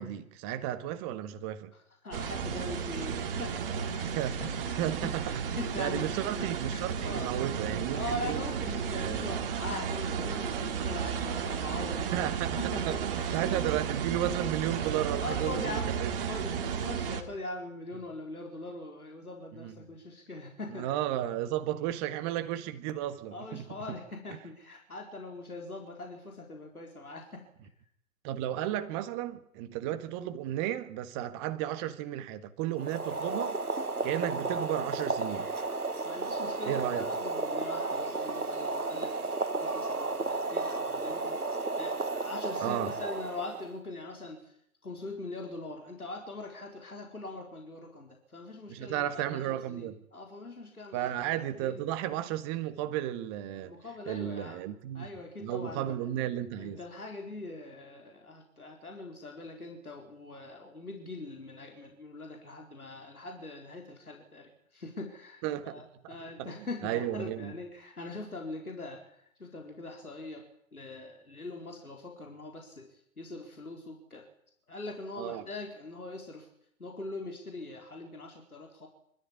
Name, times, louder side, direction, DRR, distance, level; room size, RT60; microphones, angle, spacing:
voice 1, 0.0-1.7 4.0-5.4 5.8-8.4 8.9-9.3 12.1-12.6 12.9-16.1 19.6-19.7 20.7-23.7 28.2-33.6 34.0-35.5 36.6-37.1 42.6-43.0 48.7-50.0 50.9-53.8 54.1-55.1 55.4-56.8 65.4-65.8 66.4-66.5 66.8-67.5 75.2-75.4, right 12 dB, 20° right, 1.5 m, -33 dB
voice 2, 1.7-4.1 4.4-7.3 7.9-12.1 12.6-13.8 14.1-14.2 14.8-14.9 15.2-21.0 23.3-27.5 36.0-39.2 39.5-44.6 44.8-51.1 51.6-51.8 53.6-54.6 54.9-56.0 56.6-70.5 70.7-74.2 74.7-76.5 76.8-78.9, left 2 dB, 80° left, 4.5 m, -42 dB
sound 1, 2.1-17.2, right 7 dB, 40° right, 2.7 m, -33 dB
Boiling, 32.7-43.7, right 3 dB, 90° right, 1.5 m, -33 dB
26.0 x 14.0 x 9.9 m
figure-of-eight pair, 130°, 44 cm